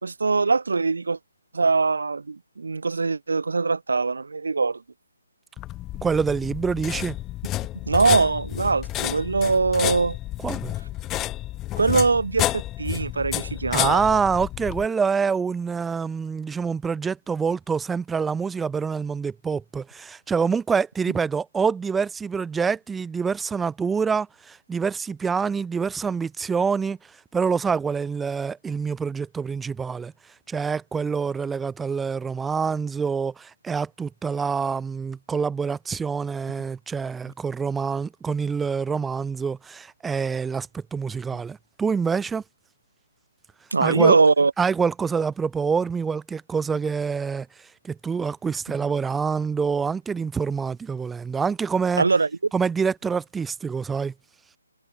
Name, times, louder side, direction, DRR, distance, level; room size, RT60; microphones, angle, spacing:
voice 1, 0.0-1.2 1.5-4.8 7.9-10.2 11.8-14.2 43.7-44.5 52.0-52.3, right 4 dB, 65° right, 1.0 m, -22 dB
sound 1, 5.6-14.9, left 15 dB, 15° left, 2.5 m, -30 dB
voice 2, 6.0-7.2 10.4-10.7 13.7-27.0 27.3-30.1 30.5-42.4 43.8-44.2 44.6-47.5 47.8-52.0 52.5-54.1, right 5 dB, 5° right, 0.5 m, -26 dB
figure-of-eight pair, 145°, 0 cm